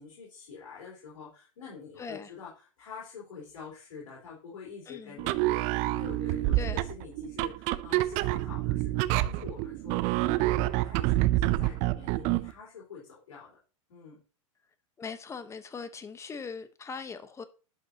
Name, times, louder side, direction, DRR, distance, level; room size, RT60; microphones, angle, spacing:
voice 1, 0.0-13.6 13.9-14.2, left 6 dB, 70° left, 3.8 m, -46 dB
voice 2, 2.0-2.3 4.9-5.2 6.5-6.8 15.0-17.4, left 5 dB, 15° left, 0.9 m, -40 dB
sound 1, 5.2-12.5, right 17 dB, 45° right, 0.5 m, -28 dB
11.0 x 5.4 x 2.8 m
hypercardioid pair, 100°, 17 cm